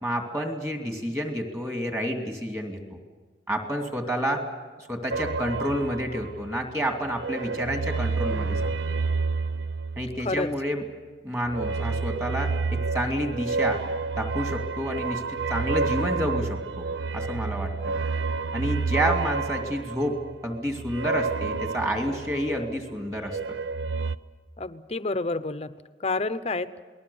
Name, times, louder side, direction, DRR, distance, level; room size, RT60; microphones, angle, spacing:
voice 1, 0.0-3.0 3.5-4.4 4.9-8.7 10.0-10.8 11.2-13.8 14.2-16.9 17.1-18.0 18.5-20.2 20.4-23.4, equal, 15° right, 3 dB, 2.6 m, -29 dB
sound 1, 5.1-6.7 7.1-10.6 11.4-22.8 23.1-24.2, right 4 dB, 75° right, 0.7 m, -29 dB
voice 2, 24.6-25.7 26.0-26.7, left 3 dB, 35° left, 12 dB, 0.7 m, -28 dB
28.0 x 20.0 x 7.1 m, 1.4 s
head